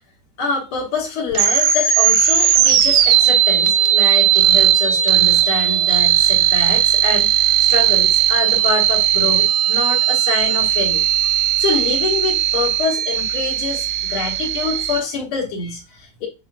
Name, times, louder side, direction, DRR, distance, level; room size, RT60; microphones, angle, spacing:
voice 1, 0.4-11.0 11.4-16.3, left 4 dB, 75° left, -1 dB, 2.4 m, -25 dB
sound 1, 1.3-15.0, right 11 dB, 90° right, 1.6 m, -17 dB
5.7 x 4.1 x 2.2 m, 0.27 s
omnidirectional pair, 2.4 m